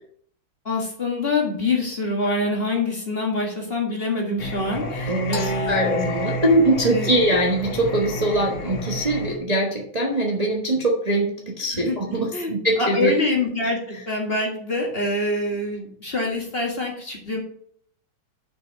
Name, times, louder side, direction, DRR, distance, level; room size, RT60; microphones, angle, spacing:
voice 1, 0.7-6.1 6.9-7.1 11.7-12.5 12.8-17.4, left 2 dB, 30° left, 0 dB, 1.9 m, -25 dB
Singing, 4.4-9.4, left 1 dB, 80° left, 2.5 m, -29 dB
voice 2, 5.1-13.1, right 1 dB, 20° right, -1 dB, 1.2 m, -22 dB
6.6 x 6.0 x 6.7 m, 0.62 s
omnidirectional pair, 2.3 m